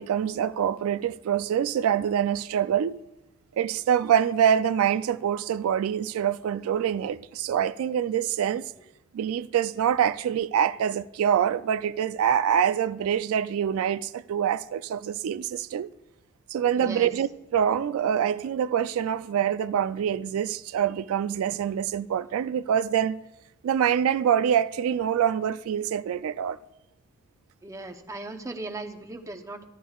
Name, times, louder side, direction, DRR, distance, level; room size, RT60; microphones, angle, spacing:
voice 1, 0.0-3.0 3.6-8.7 9.1-15.9 16.5-23.2 23.6-26.6, right 9 dB, 85° right, 0.3 m, -25 dB
voice 2, 16.7-17.1 27.6-29.7, right 2 dB, 15° right, 0.7 m, -37 dB
13.5 x 11.5 x 2.3 m
head